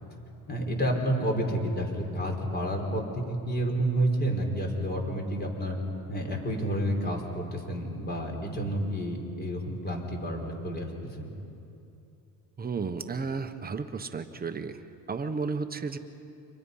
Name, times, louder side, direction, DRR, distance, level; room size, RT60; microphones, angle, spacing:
voice 1, 0.5-5.8 6.1-11.3, right 1 dB, 25° left, 1 dB, 5.1 m, -30 dB
voice 2, 12.6-14.8 15.1-16.0, right 4 dB, 25° right, 8 dB, 1.2 m, -33 dB
29.5 x 25.5 x 5.7 m, 2.8 s
cardioid pair, 120°, 39 cm